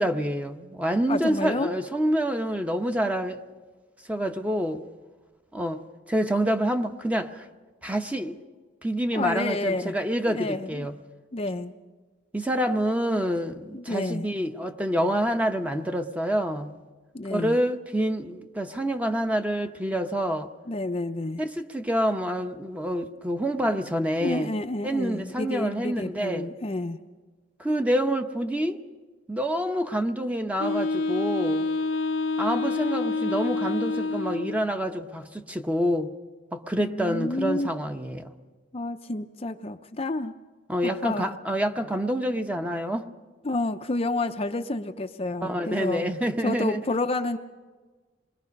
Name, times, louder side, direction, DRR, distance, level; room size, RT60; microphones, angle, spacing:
voice 1, 0.0-3.4 4.1-4.8 5.5-5.8 6.1-7.5 7.8-8.4 8.8-10.9 12.3-16.8 17.3-20.5 21.4-24.5 24.8-26.5 27.6-28.8 29.3-31.7 32.4-36.1 36.5-38.3 40.7-43.1 45.4-46.8, equal, 10° right, 1.0 m, -27 dB
voice 2, 1.1-1.7 9.1-9.9 10.3-10.9 11.3-11.7 13.7-14.3 17.1-17.6 20.7-21.4 24.2-27.0 36.8-37.7 38.7-40.3 40.8-41.4 43.4-46.1 46.4-47.4, left 2 dB, 30° left, 0.6 m, -29 dB
Wind instrument woodwind instrument, 30.6-34.7, left 3 dB, 75° left, 0.7 m, -27 dB
27.5 x 22.0 x 5.3 m
head